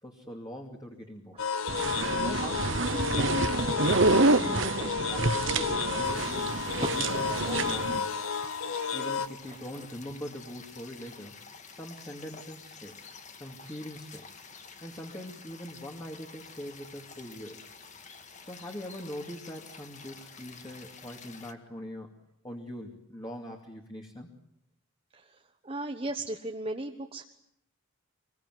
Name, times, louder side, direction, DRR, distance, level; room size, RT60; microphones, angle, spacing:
voice 1, 0.0-1.4 2.0-3.6 4.1-6.4 6.9-8.2 8.9-11.4 11.7-13.0 13.4-14.3 14.8-17.7 18.4-22.1 22.4-24.3, equal, 20° left, 0 dB, 2.6 m, -42 dB
sound 1, 1.4-9.3, left 6 dB, 80° left, 1.6 m, -32 dB
sound 2, 1.7-8.0, right 3 dB, 60° right, 1.1 m, -27 dB
sound 3, 6.0-21.5, left 5 dB, 35° left, 1.9 m, -49 dB
voice 2, 8.2-8.5 9.5-9.6 25.1-25.4 25.6-27.2, right 2 dB, 25° right, 3 dB, 1.3 m, -36 dB
27.0 x 22.5 x 9.4 m, 0.74 s
head